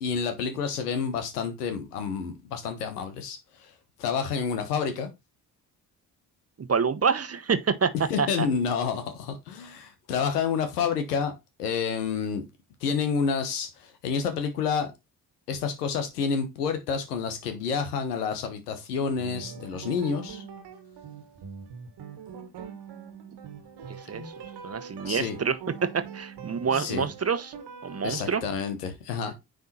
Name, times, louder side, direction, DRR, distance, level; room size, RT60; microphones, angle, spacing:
voice 1, 0.0-3.7 4.0-5.1 8.1-11.3 11.6-12.4 12.8-14.9 15.5-20.4 25.1-25.4 26.7-27.1 28.0-29.4, left 6 dB, 90° left, 1.1 m, -29 dB
voice 2, 6.6-7.9 8.2-8.5 24.1-24.2 24.6-25.6 25.9-27.5 27.8-28.4, right 6 dB, 35° right, 1.1 m, -27 dB
sound 1, 19.2-28.6, right 6 dB, 60° right, 1.6 m, -42 dB
9.4 x 3.5 x 4.2 m
hypercardioid pair, 40°, 45 cm